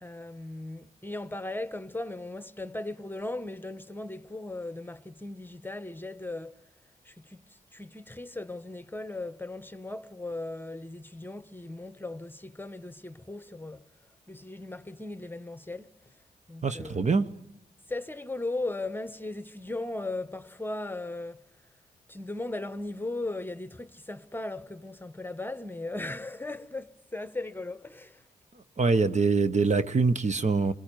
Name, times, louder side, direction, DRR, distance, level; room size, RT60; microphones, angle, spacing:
voice 1, 0.0-6.6 7.0-13.9 14.3-15.9 16.5-17.1 17.9-21.4 22.1-28.2, left 2 dB, 10° left, 1.1 m, -37 dB
voice 2, 16.6-17.3 28.8-30.7, right 4 dB, 40° right, 1.1 m, -24 dB
24.5 x 22.0 x 9.1 m
supercardioid pair, 40°, 18 cm